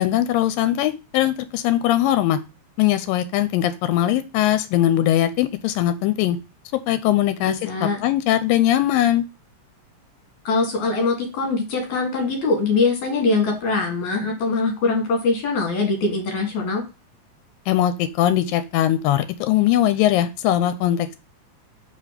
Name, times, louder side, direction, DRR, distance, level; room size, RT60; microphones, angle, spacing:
voice 1, 0.0-2.4 2.8-6.4 6.9-9.2 17.7-21.2, left 12 dB, 90° left, 12 dB, 2.3 m, -20 dB
voice 2, 7.4-8.0 10.4-16.8, left 3 dB, 60° left, 2 dB, 3.0 m, -22 dB
4.9 x 4.1 x 5.7 m, 0.29 s
omnidirectional pair, 4.0 m